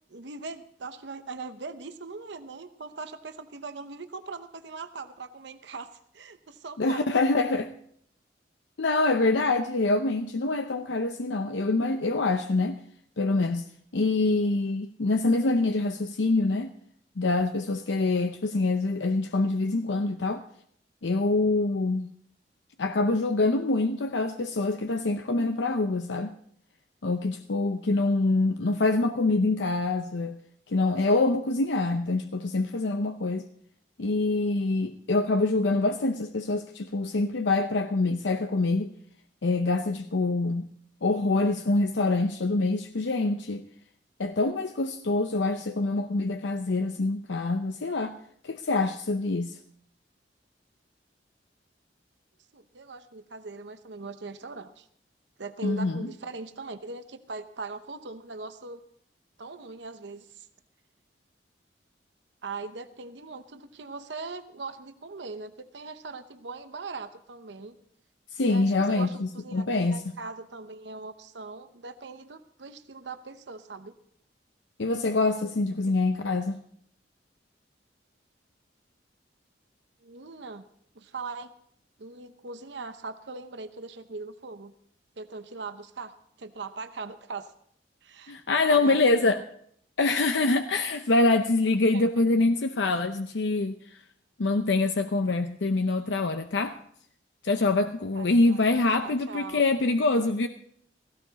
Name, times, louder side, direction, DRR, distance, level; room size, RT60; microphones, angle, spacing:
voice 1, 0.1-5.9 6.1-7.2 52.5-54.9 55.4-58.8 59.4-60.5 62.4-67.7 68.4-73.9 76.2-76.3 80.0-80.6 81.0-81.5 82.0-84.7 85.2-86.1 86.4-87.5 88.0-89.4 91.9-92.0 98.1-98.6 99.0-99.6, right 3 dB, 80° right, 0.9 m, -40 dB
voice 2, 6.8-7.7 8.8-12.8 13.2-13.6 13.9-16.7 17.2-20.4 21.0-22.1 22.8-26.3 27.0-30.4 30.7-33.5 34.0-38.9 39.4-40.7 41.0-43.6 44.2-48.2 48.4-49.6 55.6-56.1 68.3-70.0 74.8-76.6 88.3-89.4 90.0-94.0 94.4-96.8 97.4-100.5, left 2 dB, 80° left, 0.7 m, -25 dB
17.0 x 15.5 x 4.0 m
head